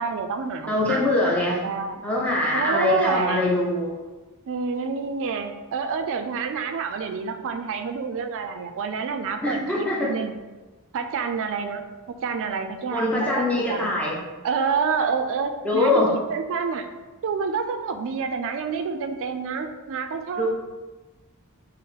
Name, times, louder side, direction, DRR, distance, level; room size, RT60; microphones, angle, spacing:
voice 1, 0.0-1.2 1.4-2.0 2.5-3.5 4.5-10.4 10.9-11.8 12.2-13.9 14.4-16.9 17.2-20.5, right 5 dB, 60° right, 7 dB, 0.3 m, -28 dB
voice 2, 0.7-1.6 2.0-3.9 9.4-10.1 12.9-14.2 15.6-16.1 20.4-20.5, left 2 dB, 5° left, -4 dB, 0.5 m, -23 dB
3.8 x 2.0 x 4.0 m, 1.2 s
head